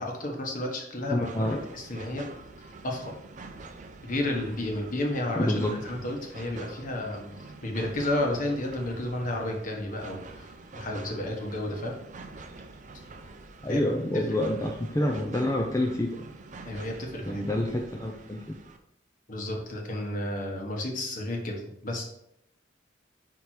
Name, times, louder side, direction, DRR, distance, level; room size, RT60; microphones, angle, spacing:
voice 1, 0.0-2.3 2.8-3.1 4.0-12.0 13.7-13.8 16.6-17.4 19.3-22.0, left 1 dB, 50° left, 1 dB, 1.3 m, -32 dB
voice 2, 1.1-1.6 5.4-5.8 13.6-16.2 17.3-18.5, left 1 dB, 15° left, 1 dB, 0.5 m, -28 dB
sound 1, 1.2-18.8, right 3 dB, 45° right, 0.6 m, -46 dB
5.1 x 4.6 x 4.4 m, 0.78 s
head